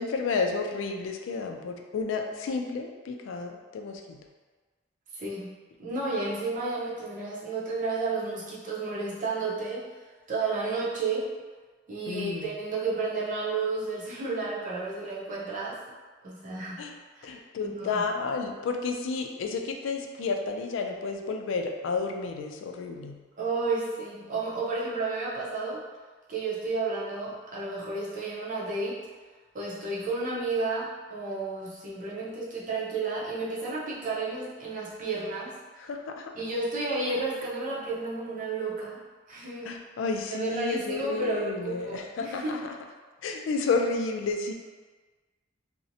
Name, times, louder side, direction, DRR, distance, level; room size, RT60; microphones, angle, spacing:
voice 1, 0.0-4.2 12.1-12.5 16.8-16.9 17.2-23.2 35.8-36.3 39.7-42.7 43.2-44.5, left 4 dB, 85° left, 4 dB, 0.3 m, -31 dB
voice 2, 5.1-9.9 10.3-11.3 11.9-15.8 16.2-17.4 17.6-18.0 23.4-25.8 26.3-29.0 29.5-35.6 36.3-39.0 39.3-39.8 40.3-42.7, right 3 dB, 45° right, -7 dB, 0.6 m, -32 dB
2.6 x 2.0 x 2.6 m, 1.4 s
head